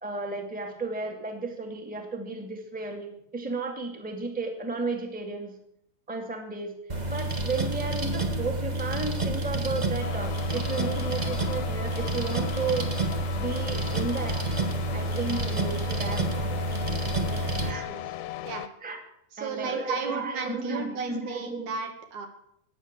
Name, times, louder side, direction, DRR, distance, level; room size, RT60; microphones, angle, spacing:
voice 1, 0.0-5.5 6.1-6.7 7.1-12.9 13.3-14.4 14.9-16.6 17.6-18.2 18.8-19.0 19.4-21.7, right 3 dB, 5° right, 4 dB, 1.6 m, -33 dB
sound 1, 6.9-17.7, right 2 dB, 70° right, 0.4 m, -29 dB
sound 2, 10.0-18.7, left 13 dB, 75° left, 1.7 m, -38 dB
voice 2, 17.3-18.0 18.5-18.7 19.3-22.3, right 4 dB, 85° right, 5 dB, 3.4 m, -35 dB
15.0 x 9.6 x 7.4 m, 0.75 s
omnidirectional pair, 3.4 m